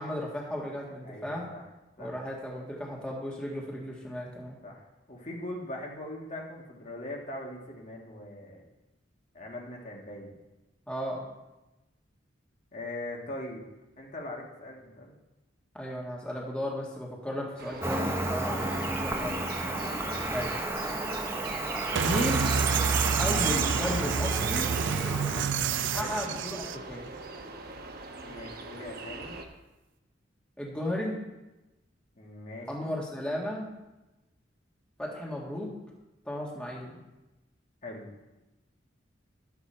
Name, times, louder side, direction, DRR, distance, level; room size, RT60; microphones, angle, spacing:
voice 1, 0.0-1.4 2.0-4.6 10.9-11.3 15.7-18.7 19.0-19.3 20.3-20.6 22.0-22.5 23.2-24.7 25.9-27.1 30.6-31.2 32.7-33.7 35.0-35.7 36.2-37.0, left 1 dB, 5° left, -4 dB, 1.7 m, -34 dB
voice 2, 1.0-1.6 2.0-2.1 4.6-4.8 5.1-8.6 9.3-10.4 12.7-13.6 14.0-15.1 20.0-20.3 25.9-26.2 28.2-29.3 32.2-33.0 37.8-38.1, left 1 dB, 40° left, -1 dB, 1.6 m, -41 dB
sound 1, 17.6-29.4, right 4 dB, 55° right, 1.0 m, -41 dB
Cricket, 17.8-25.4, right 1 dB, 15° right, 0.8 m, -32 dB
sound 2, 21.9-26.8, right 6 dB, 80° right, 0.5 m, -28 dB
12.0 x 7.1 x 4.4 m, 1.0 s
head